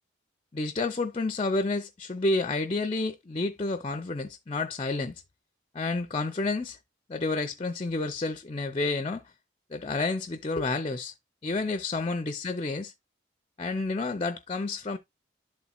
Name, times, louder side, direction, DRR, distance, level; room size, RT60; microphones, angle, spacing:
voice 1, 0.5-5.1 5.7-6.8 7.1-9.2 9.7-11.1 11.4-12.9 13.6-15.0, left 3 dB, 30° left, 0.5 m, -30 dB
11.5 x 4.1 x 2.3 m
head